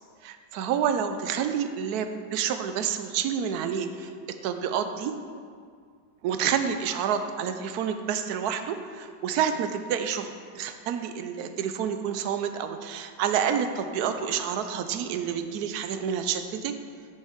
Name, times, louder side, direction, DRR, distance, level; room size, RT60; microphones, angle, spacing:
voice 1, 0.2-5.1 6.2-16.8, right 8 dB, 70° right, 8 dB, 1.0 m, -29 dB
9.7 x 6.6 x 3.6 m, 2.1 s
omnidirectional pair, 2.0 m